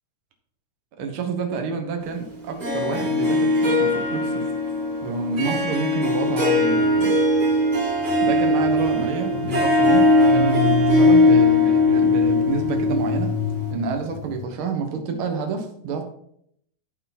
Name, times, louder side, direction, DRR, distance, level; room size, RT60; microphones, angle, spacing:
voice 1, 1.0-4.5 5.0-7.1 8.2-13.3 13.7-16.0, right 5 dB, 55° right, 4 dB, 1.5 m, -28 dB
Harp, 2.6-13.7, left 2 dB, 25° right, 2.4 m, -20 dB
sound 1, 6.7-14.5, left 9 dB, 75° left, 1.6 m, -31 dB
12.5 x 4.8 x 4.3 m, 0.69 s
omnidirectional pair, 3.9 m